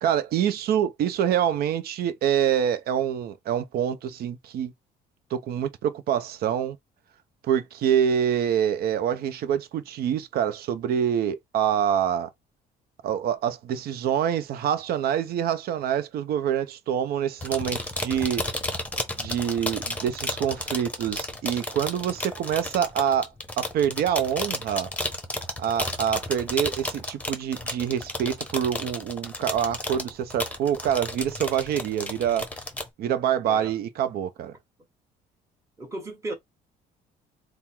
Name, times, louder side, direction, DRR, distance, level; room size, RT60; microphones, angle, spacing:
voice 1, 0.0-4.7 5.3-6.8 7.4-12.3 13.0-18.4 19.2-23.3 23.6-24.9 25.6-32.5 33.0-34.5, right 9 dB, 65° right, 0.7 m, -26 dB
sound 1, 17.4-32.9, left 1 dB, 10° left, 1.0 m, -33 dB
voice 2, 35.8-36.3, right 2 dB, 15° right, 1.8 m, -35 dB
3.6 x 2.2 x 4.5 m
cardioid pair, 110°, 17 cm